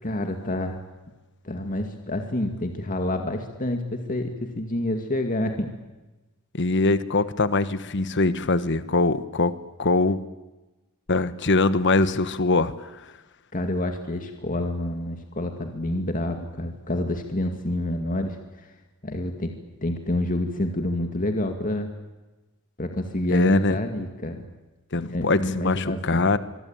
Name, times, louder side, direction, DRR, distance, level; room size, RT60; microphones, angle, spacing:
voice 1, 0.0-0.8 1.4-5.7 13.5-18.7 19.0-19.6 19.8-21.9 22.8-24.5 25.0-26.3, left 1 dB, 40° left, 5 dB, 2.3 m, -28 dB
voice 2, 6.5-10.2 11.1-13.0 23.3-23.7 24.9-26.4, left 3 dB, 55° left, 13 dB, 1.3 m, -22 dB
24.5 x 23.5 x 9.0 m, 1.1 s
head